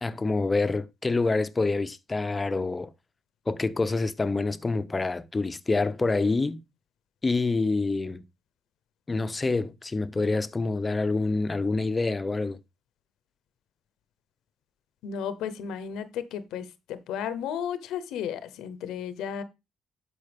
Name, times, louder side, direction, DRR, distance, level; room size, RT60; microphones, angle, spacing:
voice 1, 0.0-2.9 3.5-6.6 7.2-8.2 9.1-12.6, left 3 dB, 25° left, 0.6 m, -27 dB
voice 2, 15.0-19.4, left 8 dB, 90° left, 0.8 m, -34 dB
12.0 x 4.6 x 3.4 m
cardioid pair, 90°, 0 cm